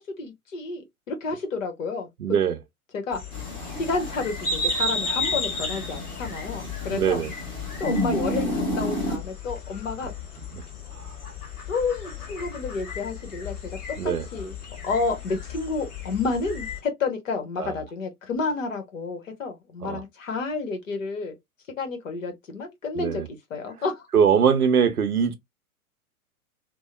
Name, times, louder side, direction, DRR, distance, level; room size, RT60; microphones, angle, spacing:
voice 1, 0.2-2.1 2.9-3.2 3.8-7.2 7.8-10.1 11.7-14.5 14.8-21.4 21.8-23.2 23.5-24.1, left 4 dB, 60° left, 1.0 m, -30 dB
voice 2, 2.2-2.6 6.9-7.3 10.5-10.6 11.0-11.1 14.0-14.2 17.6-17.7 19.8-20.0 23.0-23.3 24.1-25.3, right 7 dB, 80° right, 0.7 m, -22 dB
sound 1, 3.1-16.8, left 3 dB, 30° left, 1.2 m, -34 dB
sound 2, 3.3-9.2, equal, 10° left, 1.0 m, -32 dB
2.8 x 2.0 x 2.3 m
figure-of-eight pair, 110°, 45 cm